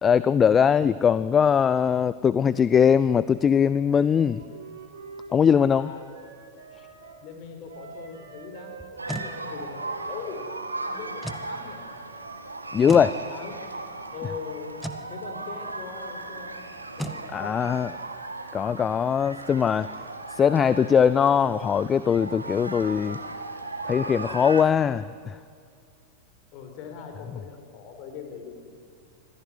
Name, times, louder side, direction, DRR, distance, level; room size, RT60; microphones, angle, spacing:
voice 1, 0.0-4.4 5.3-5.9 12.7-13.2 17.3-17.9 18.5-19.9 20.3-23.2 23.8-25.4, left 7 dB, 20° left, 17 dB, 0.5 m, -21 dB
Wind instrument woodwind instrument, 4.2-7.2 7.7-11.2, right 5 dB, 65° right, 4.3 m, -46 dB
voice 2, 5.7-6.1 7.2-10.6 10.9-11.9 13.3-13.5 14.1-14.8 15.1-16.6 16.9-18.0 26.5-28.7, left 6 dB, 40° left, 5 dB, 4.7 m, -41 dB
sound 1, 8.8-9.3 11.2-11.5 12.9-13.1 14.8-15.1 17.0-17.2, right 1 dB, ahead, 1.6 m, -34 dB
sound 2, 9.0-24.6, right 2 dB, 80° right, 2.1 m, -37 dB
26.0 x 16.5 x 9.7 m, 2.3 s
figure-of-eight pair, 90°, 0 cm